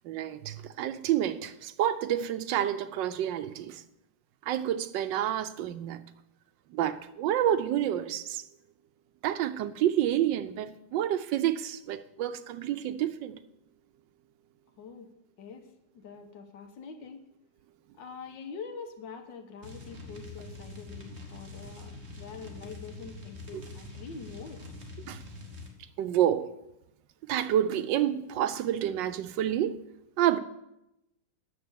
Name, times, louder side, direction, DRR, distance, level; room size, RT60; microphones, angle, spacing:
voice 1, 0.0-3.8 4.4-6.0 6.7-8.4 9.2-13.4 25.1-25.2 26.0-26.5 27.3-29.8 30.2-30.4, right 11 dB, 85° right, 1.3 m, -29 dB
voice 2, 14.8-15.1 15.4-15.7 15.9-17.2 17.9-24.7, left 5 dB, 85° left, 1.8 m, -44 dB
sound 1, 19.6-25.7, left 2 dB, 40° right, 1.6 m, -44 dB
9.2 x 6.9 x 7.0 m
omnidirectional pair, 1.9 m